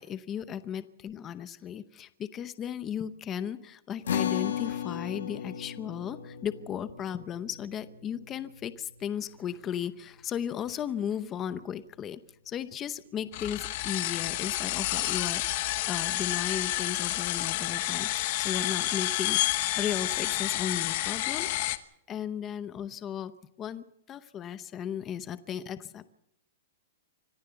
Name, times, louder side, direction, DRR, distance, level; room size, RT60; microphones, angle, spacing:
voice 1, 0.0-15.4 15.9-21.8 22.1-23.3 23.6-26.1, left 9 dB, 15° left, 13 dB, 0.7 m, -36 dB
sound 1, 4.1-10.7, left 9 dB, 85° left, 1.2 m, -36 dB
sound 2, 13.3-21.8, left 16 dB, 35° left, 1.0 m, -30 dB
25.5 x 15.5 x 6.9 m, 0.77 s
supercardioid pair, 180°, 0 cm